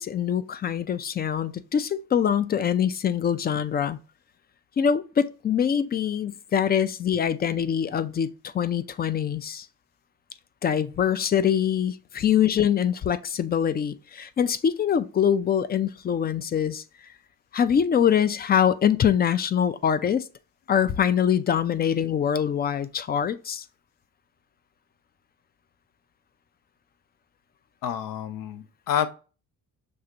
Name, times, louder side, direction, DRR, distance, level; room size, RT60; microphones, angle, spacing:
voice 1, 0.0-4.0 4.8-8.3 8.5-9.7 10.6-16.8 17.5-20.2 20.7-23.6, left 8 dB, 30° left, 0.4 m, -24 dB
voice 2, 27.8-29.1, left 9 dB, 75° left, 0.7 m, -28 dB
6.3 x 2.5 x 2.7 m
cardioid pair, 115°, 33 cm